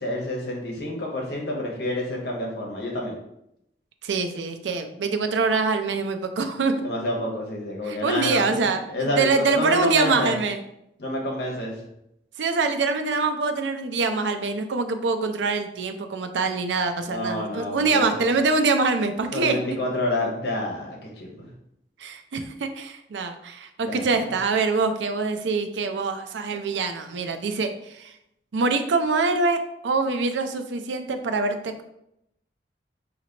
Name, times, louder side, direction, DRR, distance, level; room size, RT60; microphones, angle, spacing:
voice 1, 0.0-3.1 6.8-10.3 11.0-11.7 17.1-18.2 19.3-21.5 23.8-24.1, left 1 dB, 65° left, -1 dB, 1.1 m, -28 dB
voice 2, 4.0-6.7 7.8-10.6 12.4-19.6 22.0-28.1 28.5-31.8, right 4 dB, 85° right, 7 dB, 0.5 m, -24 dB
5.0 x 2.9 x 2.8 m, 0.80 s
head